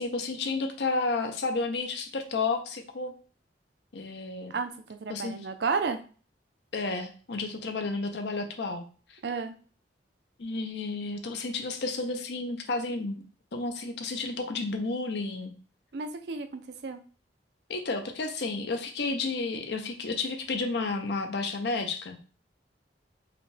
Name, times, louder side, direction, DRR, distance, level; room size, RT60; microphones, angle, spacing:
voice 1, 0.0-3.1 3.9-4.5 5.1-5.4 6.7-8.8 10.4-13.2 13.5-15.5 17.7-22.2, left 3 dB, 65° left, 5 dB, 0.6 m, -31 dB
voice 2, 5.0-6.0 9.2-9.5 15.9-17.0, right 4 dB, 60° right, 8 dB, 0.4 m, -31 dB
4.9 x 2.2 x 3.2 m, 0.39 s
head